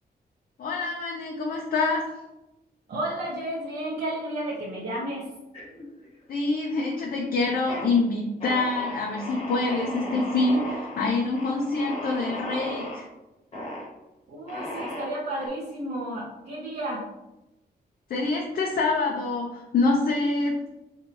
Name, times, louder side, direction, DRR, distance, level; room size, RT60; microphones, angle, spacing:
voice 1, 0.6-2.0 6.3-13.0 18.1-20.7, left 3 dB, 65° left, -2 dB, 0.7 m, -26 dB
voice 2, 2.9-5.3 14.3-17.0, right 1 dB, 75° right, -6 dB, 0.9 m, -32 dB
sound 1, 5.5-6.3 6.6-7.1 7.5-7.9 8.4-13.0 13.5-13.9 14.5-15.5, left 1 dB, 40° left, 1.2 m, -36 dB
5.3 x 3.3 x 2.9 m, 0.98 s
wide cardioid pair, 170°, 16 cm